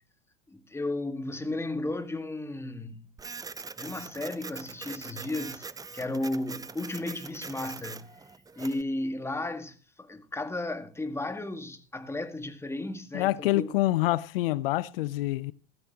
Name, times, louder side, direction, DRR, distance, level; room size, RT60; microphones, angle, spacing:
voice 1, 0.5-3.1 3.8-5.6 5.9-8.3 8.5-13.7, left 2 dB, 10° left, 1.8 m, -34 dB
Printer, 3.2-8.8, right 4 dB, 10° right, 0.6 m, -42 dB
voice 2, 13.1-15.5, left 17 dB, 70° left, 0.8 m, -26 dB
16.0 x 14.0 x 3.0 m
hypercardioid pair, 85°, 30 cm